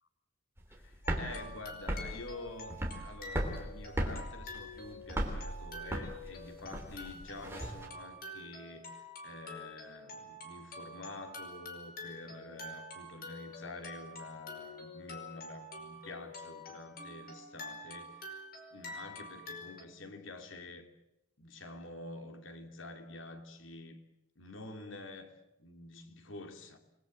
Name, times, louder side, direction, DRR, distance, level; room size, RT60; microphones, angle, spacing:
sound 1, 0.6-7.9, right 1 dB, 10° right, 3.4 m, -37 dB
voice 1, 0.7-2.7 3.0-18.4 18.7-20.9 21.4-24.0 24.4-25.3 25.6-26.8, left 2 dB, 80° left, 2.9 m, -48 dB
sound 2, 1.0-19.8, left 1 dB, 50° left, 5.0 m, -47 dB
28.0 x 21.0 x 7.7 m
head